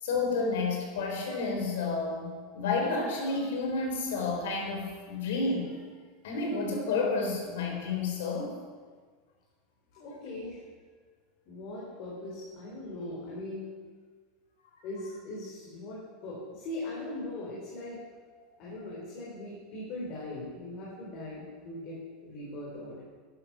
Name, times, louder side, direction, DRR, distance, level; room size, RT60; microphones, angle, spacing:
voice 1, 0.0-5.8 6.2-8.5 18.4-18.5, left 3 dB, 90° left, 2 dB, 4.1 m, -30 dB
voice 2, 10.0-10.6 11.5-13.7 14.8-18.0 18.6-23.0, left 1 dB, 45° left, -5 dB, 3.8 m, -40 dB
11.5 x 11.0 x 6.2 m, 1.5 s
supercardioid pair, 160°, 0 cm